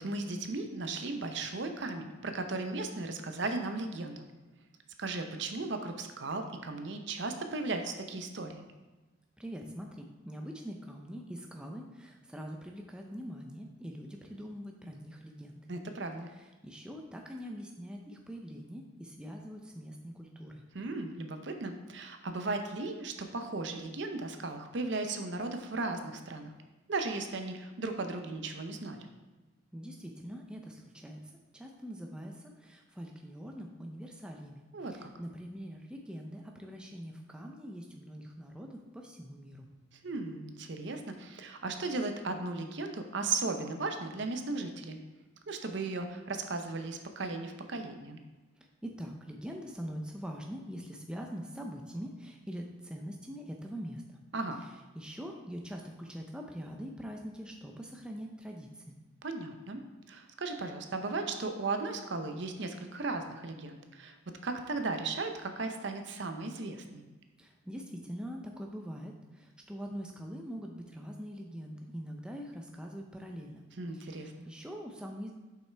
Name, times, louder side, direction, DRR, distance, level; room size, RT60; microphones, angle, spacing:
voice 1, 0.0-4.3 5.0-8.7 15.7-16.3 20.7-26.5 26.9-29.0 34.7-35.1 40.0-45.0 45.5-48.2 54.3-54.6 59.2-59.8 60.1-64.2 64.4-67.0 73.8-74.5, right 3 dB, 60° right, 6 dB, 0.6 m, -36 dB
voice 2, 9.4-15.6 16.3-20.6 29.7-39.7 48.6-54.2 54.9-58.9 67.4-73.6 73.9-75.3, equal, 5° right, 1 dB, 0.5 m, -43 dB
7.5 x 5.6 x 3.4 m, 1.2 s
head